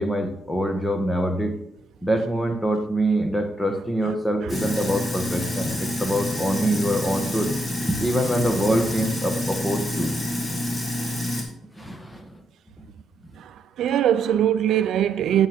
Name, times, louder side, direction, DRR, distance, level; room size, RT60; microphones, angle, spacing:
voice 1, 0.0-1.5 2.0-7.5 7.9-10.1 11.8-12.3, right 1 dB, 10° left, 1.5 m, -24 dB
Sink (filling or washing), 4.5-11.4, left 1 dB, 25° left, 2.8 m, -28 dB
voice 2, 13.4-15.5, right 10 dB, 75° right, 0.5 m, -22 dB
9.4 x 8.9 x 3.6 m
cardioid pair, 90°, 0 cm